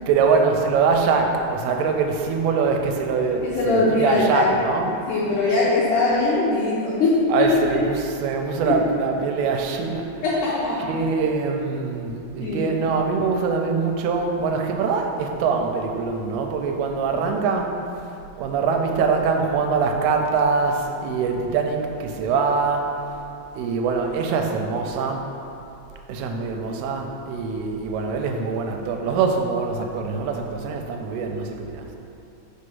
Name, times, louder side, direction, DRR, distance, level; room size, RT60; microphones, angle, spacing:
voice 1, 0.1-5.0 7.3-10.1 10.8-17.7 18.4-23.0 23.6-25.3 26.1-31.9, right 5 dB, 90° right, 3 dB, 2.5 m, -23 dB
voice 2, 3.4-4.5 5.1-7.5 8.7-8.8 10.2-10.9 12.4-12.7, left 3 dB, 80° left, -6 dB, 1.8 m, -21 dB
5.0 x 4.2 x 5.5 m, 2.8 s
omnidirectional pair, 4.5 m